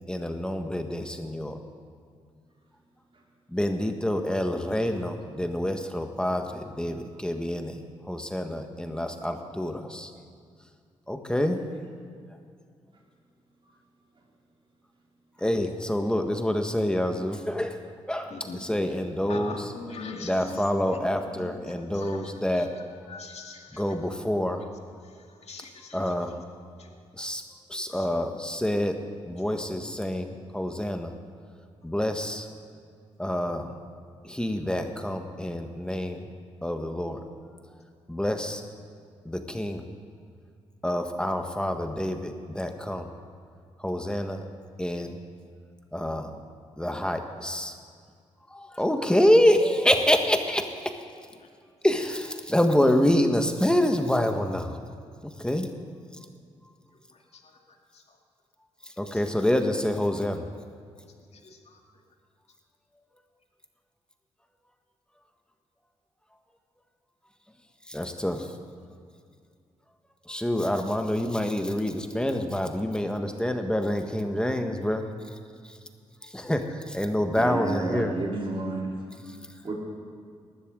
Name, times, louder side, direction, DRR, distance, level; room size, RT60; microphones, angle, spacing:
voice 1, 0.1-1.7 3.5-10.1 11.1-11.8 15.4-19.7 20.2-22.7 23.7-24.6 25.9-26.4 27.1-27.4 27.7-31.2 31.8-32.5 33.2-33.8 34.2-36.3 36.6-37.2 38.1-38.6 39.2-39.9 40.8-43.1 43.8-44.5 44.8-45.2 45.9-46.3 46.8-47.7 48.5-51.0 51.8-54.8 55.2-55.7 58.8-60.5 67.9-68.6 70.2-75.4 75.6-75.8 76.2-78.2 79.3-79.6, left 1 dB, 5° left, 5 dB, 1.5 m, -27 dB
voice 2, 19.3-22.7 23.1-23.8 25.0-26.3 26.8-26.9 27.9-28.1 51.4-51.5 57.1-57.6 57.9-58.2 61.3-61.8, left 3 dB, 60° left, 2 dB, 2.2 m, -43 dB
voice 3, 77.3-78.9 79.6-79.7, right 2 dB, 45° right, -3 dB, 3.8 m, -30 dB
19.0 x 13.0 x 3.9 m, 2.2 s
supercardioid pair, 50°, 13 cm